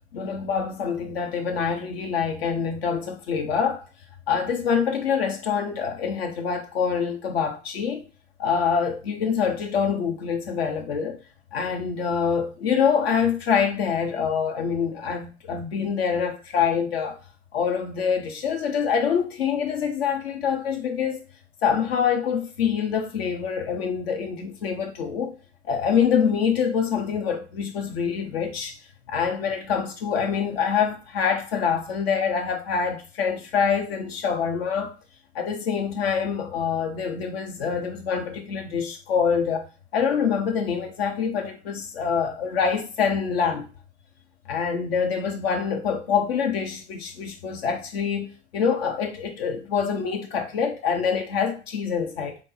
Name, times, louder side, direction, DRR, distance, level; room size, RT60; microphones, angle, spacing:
voice 1, 0.1-3.8 4.3-8.1 8.4-11.2 11.5-17.2 17.5-21.2 21.6-25.3 25.6-28.8 29.1-35.0 35.3-39.7 39.9-43.7 44.5-52.4, left 6 dB, 70° left, 0.9 m, -25 dB
3.6 x 2.9 x 4.1 m
figure-of-eight pair, 70°, 31 cm